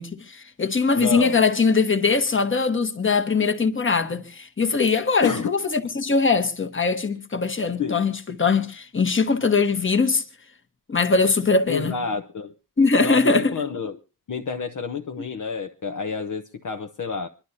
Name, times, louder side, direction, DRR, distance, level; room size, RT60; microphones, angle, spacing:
voice 1, 0.0-10.2 10.9-12.0 12.8-13.5, left 4 dB, 30° left, 1.2 m, -21 dB
voice 2, 0.9-1.4 5.2-5.5 7.8-8.0 11.7-12.5 13.0-14.0 14.3-17.3, left 5 dB, 55° left, 0.8 m, -29 dB
26.0 x 11.5 x 2.7 m
wide cardioid pair, 150°, 37 cm